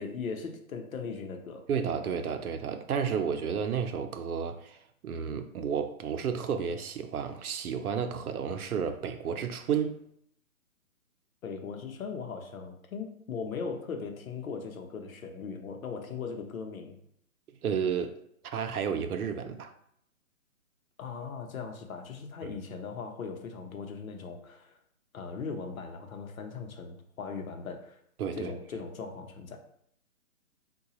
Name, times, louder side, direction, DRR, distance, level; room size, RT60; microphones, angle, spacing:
voice 1, 0.0-1.7 11.4-17.0 21.0-24.7 25.1-28.0 28.3-29.6, left 5 dB, 70° left, 0.8 m, -39 dB
voice 2, 1.7-10.0 17.6-19.7 22.4-22.6 28.2-28.5, right 7 dB, 90° right, 0.6 m, -32 dB
3.9 x 2.3 x 2.8 m
hypercardioid pair, 165°, 43 cm